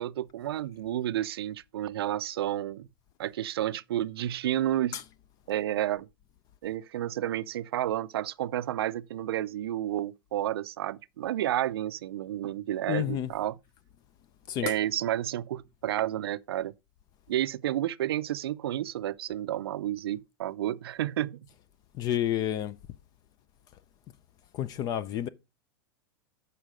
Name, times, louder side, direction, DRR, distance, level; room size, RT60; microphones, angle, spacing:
voice 1, 0.0-2.9 3.2-5.0 5.5-6.1 6.6-13.6 14.6-16.7 17.3-21.4, right 12 dB, 90° right, 0.5 m, -31 dB
voice 2, 12.9-13.3 14.5-14.7 22.0-22.8 24.5-25.3, left 11 dB, 30° left, 0.5 m, -29 dB
7.7 x 5.6 x 4.9 m
supercardioid pair, 145°, 12 cm